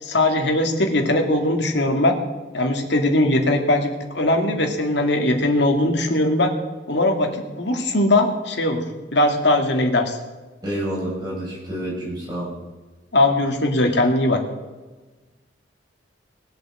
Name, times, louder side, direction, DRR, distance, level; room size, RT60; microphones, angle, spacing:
voice 1, 0.0-2.2 2.5-6.5 6.9-7.3 7.6-8.8 9.1-10.2 13.1-14.4, left 1 dB, 65° left, 3 dB, 2.4 m, -20 dB
voice 2, 10.6-12.5, right 1 dB, 20° right, -5 dB, 7.1 m, -28 dB
20.0 x 8.3 x 7.7 m, 1.2 s
head